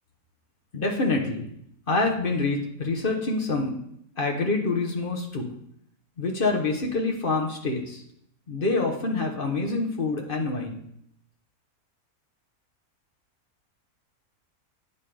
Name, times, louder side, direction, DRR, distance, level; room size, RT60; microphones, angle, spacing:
voice 1, 0.7-1.5 1.9-3.7 4.2-5.5 6.2-8.0 8.5-10.8, left 3 dB, 40° left, 1 dB, 1.0 m, -26 dB
9.7 x 5.5 x 3.4 m, 0.71 s
omnidirectional pair, 1.6 m